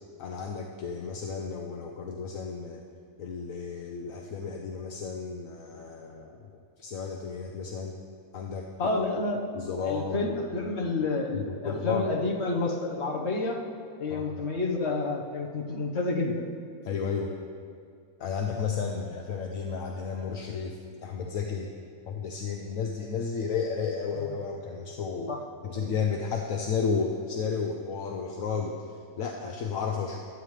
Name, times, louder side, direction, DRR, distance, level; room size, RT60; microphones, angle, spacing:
voice 1, 0.2-2.8 3.2-6.5 6.8-8.0 8.3-8.9 9.5-10.3 10.6-10.7 11.3-12.0 14.1-14.4 16.8-17.3 18.2-21.7 22.1-25.3 25.6-30.2, left 5 dB, 70° left, 2 dB, 1.2 m, -33 dB
voice 2, 8.8-9.4 9.8-13.6 14.0-16.4 24.2-24.4 25.3-25.4 25.7-25.9, left 3 dB, 50° left, 0 dB, 1.5 m, -29 dB
21.5 x 9.0 x 3.3 m, 2.3 s
omnidirectional pair, 1.5 m